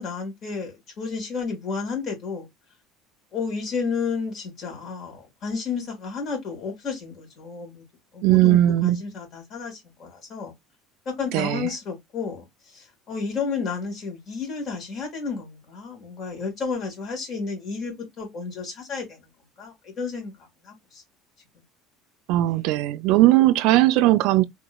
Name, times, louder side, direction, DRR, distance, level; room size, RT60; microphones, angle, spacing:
voice 1, 0.0-2.5 3.3-7.8 8.1-10.5 11.1-12.4 12.7-19.2 19.6-20.3 20.6-21.0, left 5 dB, 40° left, 2.4 m, -32 dB
voice 2, 8.2-9.0 11.3-11.7 22.3-24.4, right 15 dB, 70° right, 0.3 m, -18 dB
3.6 x 3.0 x 2.2 m
cardioid pair, 130°, 0 cm